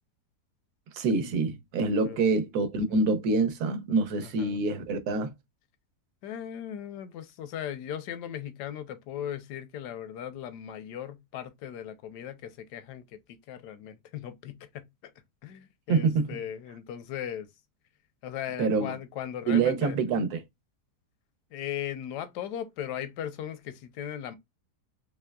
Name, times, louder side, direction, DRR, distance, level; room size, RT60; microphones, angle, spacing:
voice 1, 0.9-5.3 15.9-16.3 18.6-18.9 19.5-20.4, right 4 dB, 70° right, 1.2 m, -26 dB
voice 2, 4.2-4.6 6.2-15.1 15.4-17.5 18.2-20.0 21.5-24.4, left 10 dB, 80° left, 1.2 m, -38 dB
3.6 x 3.1 x 2.2 m
omnidirectional pair, 1.8 m